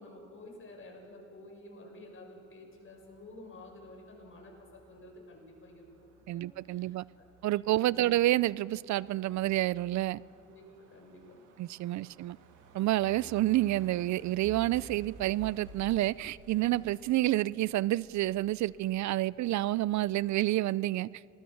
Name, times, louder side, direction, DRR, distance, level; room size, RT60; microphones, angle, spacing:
voice 1, 0.0-5.8 6.3-7.3 7.7-8.1 10.4-11.5, left 1 dB, 45° left, 6.9 m, -51 dB
sound 1, 2.7-20.6, right 4 dB, 90° right, 2.7 m, -56 dB
voice 2, 6.3-7.0 7.4-10.2 11.6-12.4 12.7-21.1, right 16 dB, 70° right, 0.4 m, -29 dB
26.5 x 19.5 x 7.2 m
cardioid pair, 90°, 30 cm